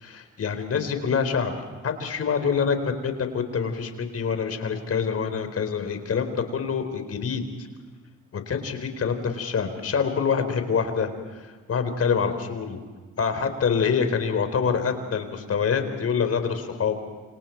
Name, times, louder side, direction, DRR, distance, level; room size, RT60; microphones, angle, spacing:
voice 1, 0.1-7.4 8.3-11.1 11.4-12.8 13.2-17.0, left 6 dB, 50° left, 8 dB, 4.2 m, -26 dB
28.5 x 28.0 x 4.6 m, 1.4 s
cardioid pair, 90°, 30 cm